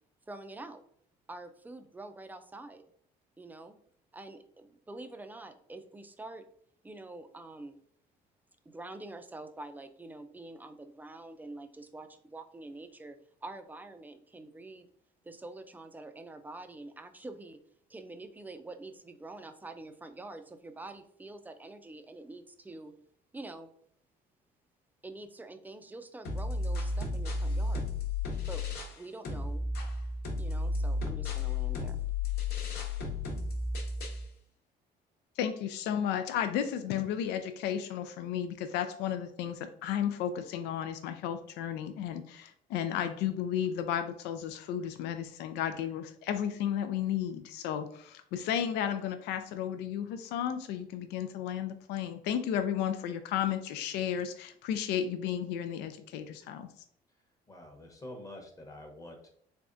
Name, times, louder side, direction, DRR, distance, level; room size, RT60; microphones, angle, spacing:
voice 1, 0.3-0.8 1.3-2.8 3.4-3.8 4.1-6.4 6.8-7.8 8.7-13.2 13.4-14.9 15.2-17.6 17.9-22.9 23.3-23.7 25.0-27.9 28.5-28.6 28.9-29.7 30.4-32.1, right 2 dB, 10° right, 8 dB, 0.4 m, -46 dB
sound 1, 26.2-29.0 29.2-34.2, left 3 dB, 70° left, 1.0 m, -33 dB
voice 2, 35.4-56.7, left 9 dB, 90° left, 9 dB, 0.4 m, -33 dB
voice 3, 57.5-59.3, left 1 dB, 20° left, 3 dB, 0.9 m, -47 dB
3.5 x 3.4 x 2.6 m, 0.65 s
cardioid pair, 110°, 17 cm